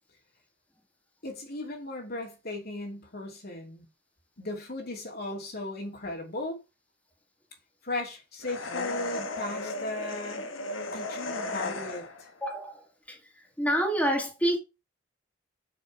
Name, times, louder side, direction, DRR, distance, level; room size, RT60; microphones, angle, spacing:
voice 1, 1.2-3.9 4.4-6.6 7.8-10.5 10.9-12.3, left 2 dB, 50° left, 3.0 m, -37 dB
sound 1, 8.4-12.3, left 2 dB, 80° left, 1.7 m, -35 dB
voice 2, 12.4-12.8 13.1-13.2 13.6-14.6, equal, 5° left, 2.4 m, -27 dB
7.2 x 6.5 x 6.2 m
head